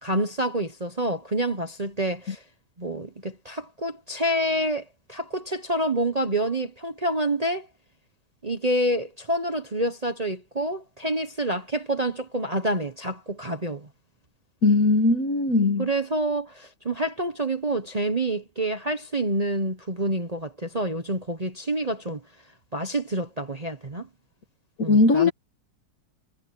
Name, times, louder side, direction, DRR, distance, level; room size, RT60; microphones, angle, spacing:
voice 1, 0.0-2.4 2.8-4.8 5.1-7.7 8.4-13.9 15.8-22.2 22.7-24.1 24.8-25.3, right 1 dB, 25° right, 1.1 m, -27 dB
voice 2, 14.6-15.9 24.9-25.3, left 3 dB, 50° left, 1.9 m, -19 dB
omnidirectional pair, 1.9 m